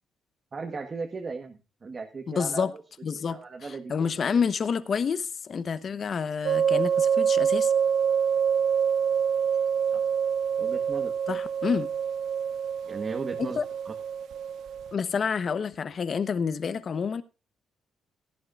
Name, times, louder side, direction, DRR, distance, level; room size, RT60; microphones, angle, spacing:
voice 1, 0.5-2.8 3.1-4.1 9.9-10.0 10.6-11.1 12.9-13.6 13.8-13.9, right 4 dB, 35° right, 1.5 m, -37 dB
voice 2, 2.3-2.7 3.0-7.7 11.3-11.9 13.4-13.6 14.9-17.2, left 6 dB, 50° left, 1.0 m, -28 dB
sound 1, 6.4-14.9, right 7 dB, 75° right, 0.5 m, -26 dB
17.0 x 11.0 x 2.5 m
cardioid pair, 90°, 0 cm